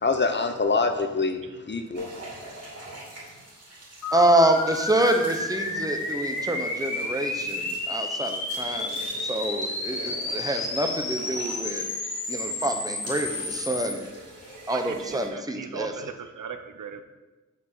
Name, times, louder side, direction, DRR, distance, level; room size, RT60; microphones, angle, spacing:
voice 1, 0.0-2.1, left 4 dB, 35° left, 7 dB, 0.7 m, -25 dB
sound 1, 1.9-15.3, right 1 dB, 55° right, 2.5 m, -44 dB
sound 2, 4.0-13.9, left 2 dB, 75° left, 1.6 m, -31 dB
voice 2, 4.1-11.9 12.3-14.0 14.7-16.1, right 1 dB, 10° right, 5 dB, 0.8 m, -26 dB
voice 3, 11.8-12.6 14.6-17.0, right 7 dB, 80° right, 8 dB, 0.7 m, -39 dB
6.1 x 5.0 x 6.7 m, 1.1 s
wide cardioid pair, 100°, 31 cm